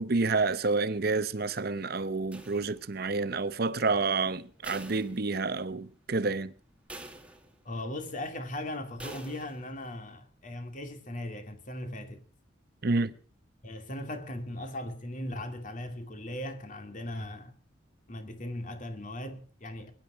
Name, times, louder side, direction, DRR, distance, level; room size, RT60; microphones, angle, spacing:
voice 1, 0.0-6.5 12.8-13.1, right 3 dB, 55° right, 0.8 m, -29 dB
sound 1, 2.3-3.1 4.6-5.8 6.2-6.3 6.9-7.8 9.0-9.8, right 2 dB, 5° right, 2.0 m, -47 dB
voice 2, 7.6-12.2 13.6-17.5 18.1-19.9, left 1 dB, 45° left, 2.4 m, -38 dB
21.0 x 11.0 x 6.2 m
head